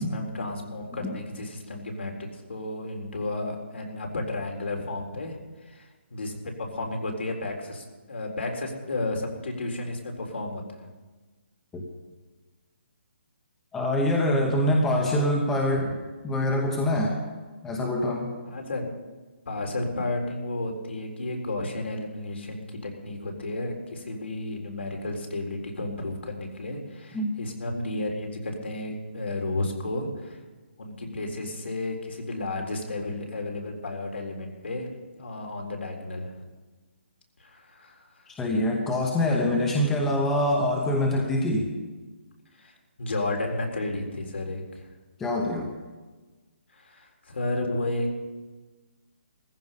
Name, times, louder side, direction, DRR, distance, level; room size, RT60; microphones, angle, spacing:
voice 1, 0.0-5.8 6.1-10.9 15.8-15.9 18.5-18.9 19.5-30.4 30.8-34.9 35.2-36.5 37.4-38.2 42.6-44.9 46.7-48.2, left 2 dB, 70° left, 2 dB, 3.9 m, -32 dB
voice 2, 13.7-15.9 16.2-17.2 17.6-18.3 27.1-27.4 38.3-41.7 45.2-45.7, left 1 dB, 5° left, 0 dB, 1.0 m, -24 dB
16.5 x 14.5 x 5.5 m, 1.3 s
hypercardioid pair, 175°, 6 cm